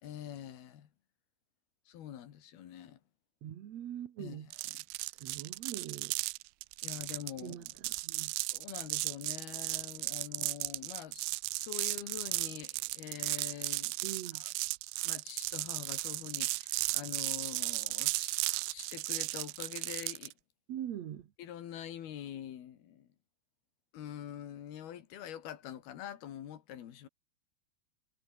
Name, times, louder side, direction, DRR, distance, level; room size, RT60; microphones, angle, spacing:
voice 1, 0.0-0.9 1.9-3.0 4.2-4.4 6.8-7.7 8.5-13.9 14.3-14.5 15.0-20.3 21.4-23.1 23.9-27.1, left 10 dB, 60° left, 3.7 m, -45 dB
voice 2, 3.4-4.5 5.1-6.2 7.4-8.3 14.0-14.4 20.7-21.3, right 11 dB, 70° right, 1.6 m, -43 dB
sound 1, 4.5-20.3, right 25 dB, 85° right, 2.8 m, -35 dB
omnidirectional pair, 5.5 m